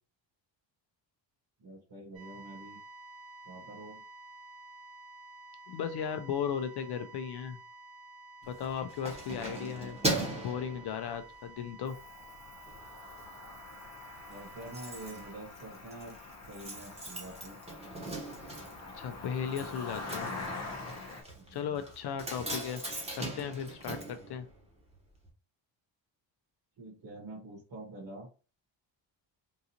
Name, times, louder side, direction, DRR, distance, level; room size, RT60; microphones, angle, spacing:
voice 1, 1.6-2.8 3.4-4.0 14.3-17.6 21.3-21.8 26.8-28.3, right 2 dB, 60° right, -4 dB, 1.6 m, -46 dB
sound 1, 2.1-15.3, right 2 dB, 75° right, 1.8 m, -52 dB
voice 2, 5.7-7.6 8.4-10.0 10.3-12.0 18.9-20.3 21.5-22.8 23.1-24.5, left 7 dB, 60° left, 8 dB, 0.5 m, -36 dB
Keys jangling, 8.4-11.5 12.0-12.2 12.6-13.3 13.5-13.6 13.9-14.0 14.2-25.0 25.2-25.3, right 2 dB, 15° right, 1.0 m, -39 dB
Cricket, 11.9-21.2, left 3 dB, 35° left, 0.9 m, -45 dB
3.8 x 2.5 x 2.8 m, 0.35 s
cardioid pair, 130°, 44 cm